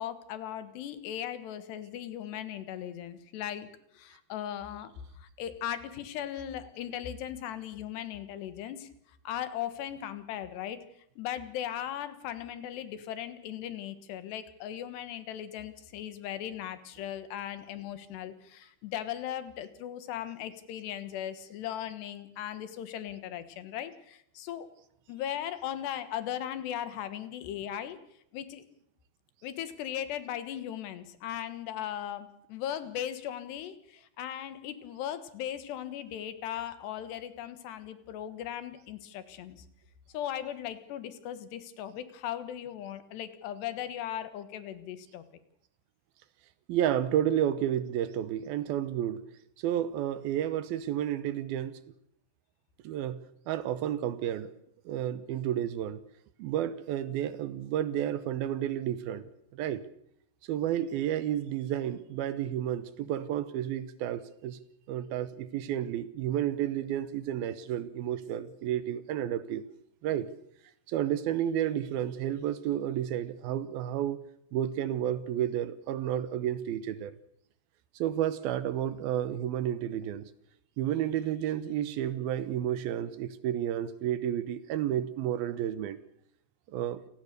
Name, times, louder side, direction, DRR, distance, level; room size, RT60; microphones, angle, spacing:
voice 1, 0.0-8.9 9.3-10.9 11.2-24.7 25.1-28.0 28.3-28.6 29.4-39.7 40.1-45.2, left 10 dB, 85° left, 12 dB, 3.6 m, -38 dB
voice 2, 46.7-49.2 49.6-51.8 52.8-53.2 53.5-54.5 54.9-56.0 56.4-59.8 60.5-64.6 64.9-69.6 70.0-70.3 70.9-74.2 74.5-77.1 78.0-80.3 80.8-86.0 86.7-87.0, right 11 dB, 75° right, 14 dB, 2.6 m, -31 dB
28.5 x 17.5 x 6.8 m, 0.74 s
omnidirectional pair, 4.7 m